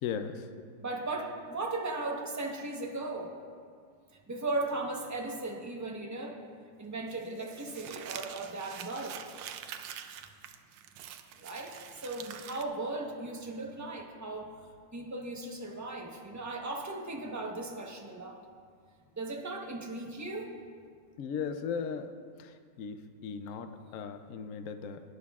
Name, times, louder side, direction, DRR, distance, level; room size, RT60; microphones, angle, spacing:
voice 1, 0.0-0.5 21.2-22.1 22.4-25.0, left 6 dB, 75° left, 8 dB, 0.7 m, -37 dB
voice 2, 0.8-3.3 4.3-6.4 6.8-9.2 11.4-14.5 14.9-18.4 19.2-20.5, right 2 dB, 15° right, 1 dB, 0.6 m, -37 dB
Crumpling crinkling, 7.1-12.6, right 9 dB, 85° right, 1.3 m, -45 dB
18.5 x 10.5 x 2.4 m, 2.1 s
omnidirectional pair, 2.0 m